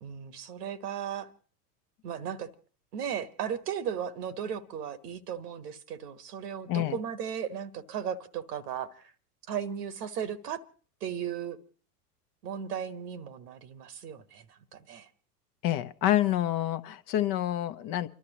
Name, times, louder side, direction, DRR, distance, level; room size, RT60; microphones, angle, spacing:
voice 1, 0.0-1.3 2.0-2.5 2.9-9.1 9.5-10.6 11.0-11.6 12.4-15.1, right 8 dB, 75° right, 1.3 m, -36 dB
voice 2, 15.6-18.1, left 13 dB, 45° left, 0.9 m, -27 dB
30.0 x 12.5 x 3.0 m
hypercardioid pair, 85°, 48 cm